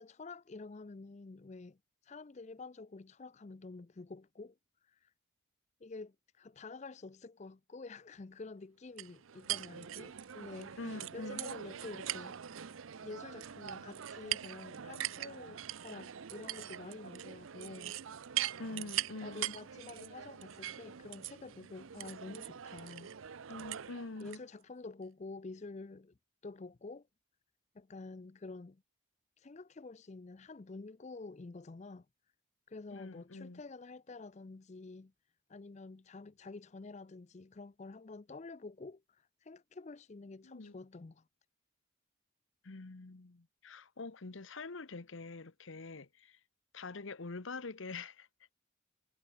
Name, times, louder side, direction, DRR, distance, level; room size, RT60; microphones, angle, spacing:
voice 1, 0.0-4.6 4.8-5.1 5.8-12.4 13.0-18.0 19.2-23.2 24.2-26.2 26.4-27.1 27.7-28.8 29.4-32.1 32.7-35.1 35.5-41.2, left 3 dB, 35° left, 0.4 m, -49 dB
sound 1, 9.0-24.4, right 11 dB, 75° right, 0.6 m, -42 dB
voice 2, 10.8-11.5 18.6-19.6 23.5-24.4 32.9-33.6 40.4-40.8 42.6-46.4 46.7-48.3, left 3 dB, 70° left, 1.0 m, -45 dB
head